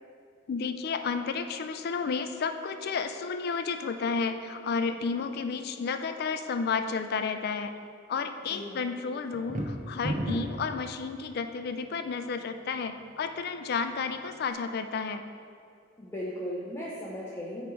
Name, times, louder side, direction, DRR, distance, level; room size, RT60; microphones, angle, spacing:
voice 1, 0.5-7.7 8.1-15.2, left 5 dB, 55° left, 8 dB, 0.4 m, -32 dB
voice 2, 8.4-8.9 16.0-17.7, equal, 15° left, -6 dB, 0.6 m, -37 dB
sound 1, 9.3-10.7, right 1 dB, 40° right, 0.8 m, -31 dB
8.9 x 3.2 x 4.6 m, 2.3 s
head